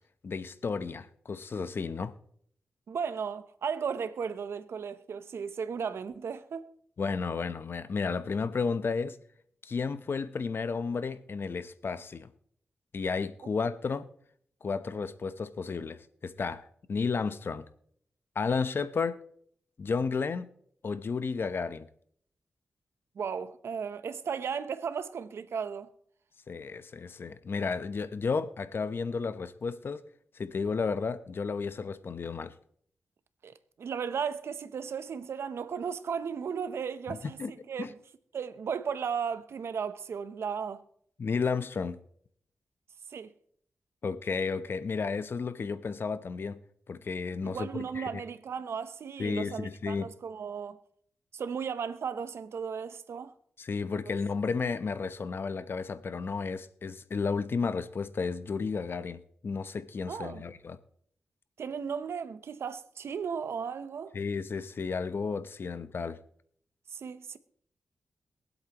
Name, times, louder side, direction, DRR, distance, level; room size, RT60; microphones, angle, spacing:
voice 1, 0.2-2.1 7.0-9.2 9.6-12.3 12.9-14.1 14.6-17.7 18.3-19.2 19.8-20.5 20.8-21.9 26.5-30.0 30.3-32.5 37.1-37.5 37.8-37.9 41.2-42.0 44.0-46.6 46.9-48.1 49.2-50.1 53.6-60.8 64.1-66.2, left 5 dB, 55° left, 0.8 m, -32 dB
voice 2, 2.9-6.7 23.2-25.9 33.4-38.0 38.3-40.8 43.1-43.3 47.4-50.8 51.3-53.3 60.1-60.4 61.6-64.2 66.9-67.4, right 6 dB, 75° right, 0.8 m, -35 dB
22.5 x 8.1 x 3.0 m
cardioid pair, 55°, 4 cm